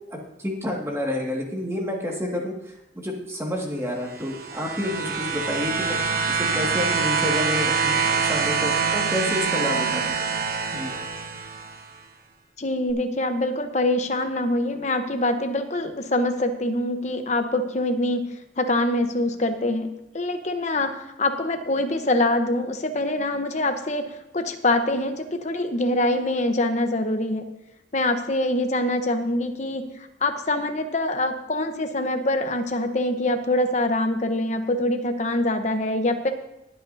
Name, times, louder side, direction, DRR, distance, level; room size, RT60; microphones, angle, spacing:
voice 1, 0.1-6.0 6.3-10.0 10.4-10.5 10.7-10.9, left 1 dB, 15° right, -1 dB, 1.9 m, -29 dB
sound 1, 4.1-11.8 12.9-13.0, right 5 dB, 50° right, 1.1 m, -25 dB
voice 2, 12.6-18.3 18.6-27.5 27.9-29.8 30.2-36.3, left 1 dB, 40° left, 7 dB, 0.9 m, -24 dB
21.0 x 8.2 x 2.7 m, 0.89 s
head